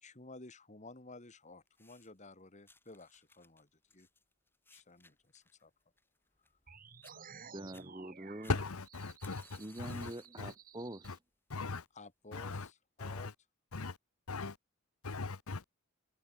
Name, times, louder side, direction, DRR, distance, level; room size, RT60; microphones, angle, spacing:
voice 1, 0.0-4.1 4.7-5.7 6.5-6.6 12.0-13.3, left 2 dB, 35° left, 2.3 m, -54 dB
sound 1, 1.7-2.3 2.7-6.7 7.0-7.2 7.6-7.9 8.4-10.4 10.8-11.2 12.0-12.1, left 3 dB, 10° left, 2.5 m, -63 dB
sound 2, 6.7-11.1, right 6 dB, 40° right, 2.1 m, -54 dB
voice 2, 7.5-8.6 9.6-11.2, right 1 dB, 20° right, 2.0 m, -45 dB
voice 3, 8.5-10.1 10.4-10.5 11.0-11.2 11.5-11.8 12.3-12.7 13.0-13.3 13.7-14.0 14.3-14.6 15.0-15.6, left 3 dB, 85° left, 1.1 m, -38 dB
head